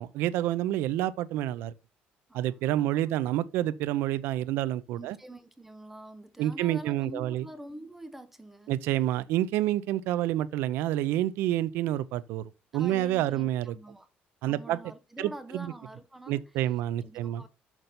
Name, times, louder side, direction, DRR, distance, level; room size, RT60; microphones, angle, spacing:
voice 1, 0.0-1.7 2.3-5.2 6.4-7.4 8.7-13.8 14.4-14.8 15.2-15.7 16.3-17.4, right 13 dB, 80° right, 0.5 m, -28 dB
voice 2, 2.3-2.9 5.0-8.7 12.7-14.1 14.4-16.4 17.0-17.5, right 1 dB, 5° right, 0.8 m, -46 dB
6.6 x 6.0 x 4.1 m
cardioid pair, 145°, 4 cm